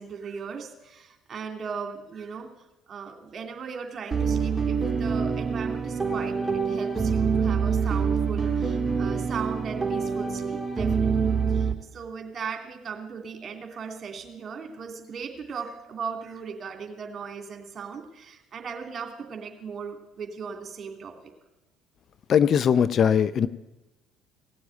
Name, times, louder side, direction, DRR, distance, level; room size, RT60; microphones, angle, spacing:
voice 1, 0.0-2.5 2.9-21.1, right 6 dB, 45° right, 4 dB, 2.8 m, -37 dB
sound 1, 4.1-11.7, right 5 dB, 25° right, 1.9 m, -26 dB
voice 2, 22.3-23.5, left 8 dB, 50° left, 14 dB, 0.6 m, -20 dB
17.5 x 7.0 x 9.1 m, 1.0 s
hypercardioid pair, 55°, 0 cm